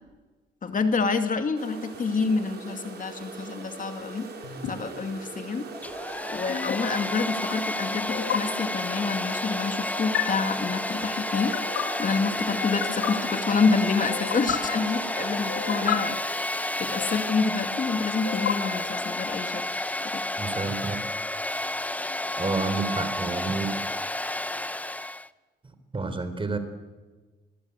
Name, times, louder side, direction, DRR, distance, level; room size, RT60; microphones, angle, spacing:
voice 1, 0.6-4.3 4.7-5.7 6.3-11.5 12.0-16.5 16.8-19.9 20.1-20.2, left 4 dB, 40° left, 7 dB, 2.3 m, -27 dB
sound 1, 1.6-15.9, right 4 dB, 55° right, 6.1 m, -41 dB
sound 2, 4.4-4.7 6.5-6.8 8.1-8.4 9.9-10.2 11.3-11.8 12.6-13.1 14.1-14.6 15.5-16.0 17.0-17.6 18.3-19.1, left 10 dB, 80° left, 3.2 m, -31 dB
Domestic sounds home sounds, 5.7-25.3, left 1 dB, 5° left, 0.9 m, -31 dB
voice 2, 20.4-21.0 22.4-23.7 25.6-26.6, right 3 dB, 25° right, 10 dB, 4.0 m, -29 dB
26.5 x 21.0 x 8.3 m, 1.3 s
cardioid pair, 90°, 20 cm